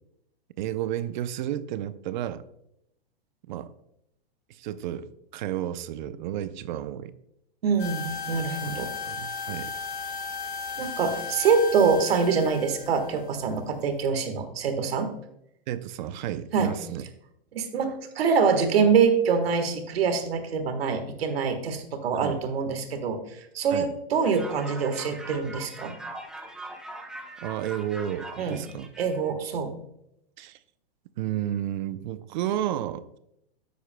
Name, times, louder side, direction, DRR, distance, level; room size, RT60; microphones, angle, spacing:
voice 1, 0.6-2.4 3.5-3.7 4.5-5.1 5.3-7.1 8.6-9.7 15.7-17.1 22.1-22.4 23.7-23.9 27.4-28.9 30.4-30.6 31.2-33.2, right 11 dB, 50° right, 14 dB, 0.6 m, -32 dB
voice 2, 7.6-8.9 10.8-15.1 16.5-16.7 17.5-25.9 28.4-28.6 29.0-29.7, right 5 dB, 80° right, 7 dB, 1.5 m, -25 dB
sound 1, 7.8-14.0, left 5 dB, 75° left, 3.1 m, -36 dB
sound 2, 24.2-29.3, right 1 dB, ahead, 0.7 m, -41 dB
11.0 x 8.1 x 2.2 m, 0.78 s
hypercardioid pair, 140°, 30 cm